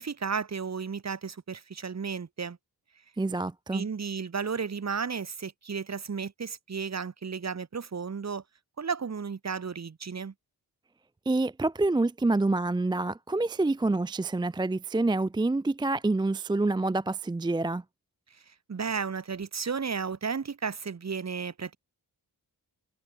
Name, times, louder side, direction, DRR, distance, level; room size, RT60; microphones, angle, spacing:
voice 1, 0.0-2.6 3.7-8.4 8.8-10.3 18.3-21.8, right 5 dB, 45° right, 2.3 m, -33 dB
voice 2, 3.2-3.9 11.3-17.8, right 2 dB, 10° right, 0.5 m, -27 dB
wide cardioid pair, 135°, 38 cm